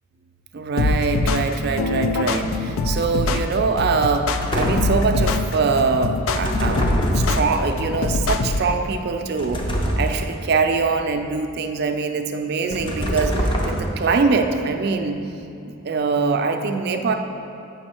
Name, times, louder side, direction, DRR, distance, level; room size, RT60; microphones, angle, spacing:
voice 1, 0.5-4.3 4.5-9.6 10.0-15.2 15.8-17.1, right 4 dB, 50° right, 5 dB, 0.4 m, -23 dB
sound 1, 0.8-8.7, left 3 dB, 75° left, 0.4 m, -23 dB
sound 2, 4.4-5.1 6.3-7.7 9.4-10.4 12.7-14.1, equal, 25° left, 0.6 m, -24 dB
7.7 x 5.3 x 4.3 m, 2.7 s
head